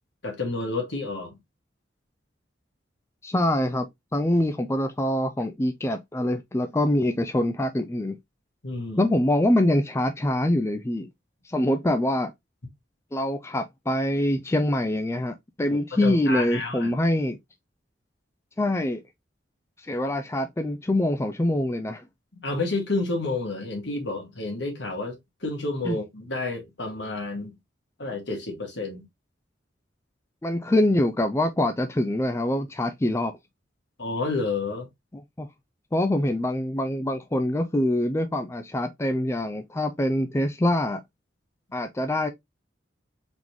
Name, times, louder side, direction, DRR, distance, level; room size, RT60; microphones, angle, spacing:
voice 1, 0.2-1.4 8.6-9.1 15.7-16.9 22.4-27.5 28.0-29.1 34.0-34.9, left 3 dB, 75° left, 1.8 m, -30 dB
voice 2, 3.2-3.9 4.1-8.2 9.0-11.1 11.4-12.3 13.1-17.4 18.6-19.0 19.9-22.0 25.9-26.0 30.4-33.3 35.1-35.5 35.9-41.0 41.7-42.3, left 1 dB, 15° left, 0.4 m, -24 dB
4.0 x 3.6 x 3.0 m
head